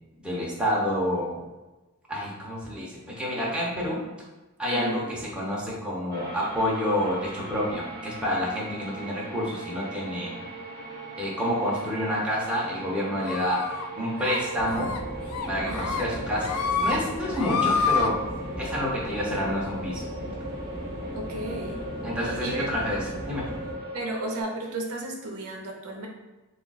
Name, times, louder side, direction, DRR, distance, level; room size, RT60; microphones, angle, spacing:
voice 1, 0.2-1.4 2.1-4.0 4.6-10.4 11.2-13.6 14.0-14.9 15.5-18.2 18.6-20.0 22.0-23.4, equal, 5° right, -6 dB, 0.8 m, -28 dB
voice 2, 4.7-5.0 15.6-16.0 21.1-21.8 22.2-22.8 23.9-26.1, right 2 dB, 70° right, 1 dB, 0.6 m, -33 dB
sound 1, 6.1-24.4, right 1 dB, 45° right, 0.9 m, -39 dB
sound 2, 13.3-13.9 14.2-14.4 14.7-15.0 15.3-16.0 16.4-17.0 17.3-18.1, left 5 dB, 80° left, 0.4 m, -27 dB
sound 3, 14.6-23.8, equal, 25° left, 0.6 m, -37 dB
3.4 x 2.4 x 3.9 m, 1.1 s
head